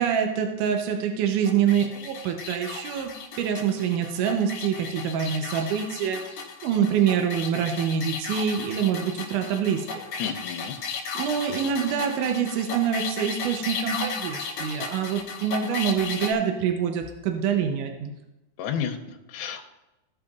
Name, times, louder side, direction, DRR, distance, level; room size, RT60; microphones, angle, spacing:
voice 1, 0.0-3.1 3.4-6.2 6.6-10.0 11.1-18.1, right 8 dB, 80° right, 4 dB, 1.9 m, -25 dB
sound 1, 1.4-16.3, left 5 dB, 65° left, 2.0 m, -35 dB
voice 2, 10.2-10.7 18.6-19.6, left 8 dB, 85° left, 2 dB, 2.5 m, -31 dB
15.5 x 6.7 x 2.4 m, 0.97 s
omnidirectional pair, 4.4 m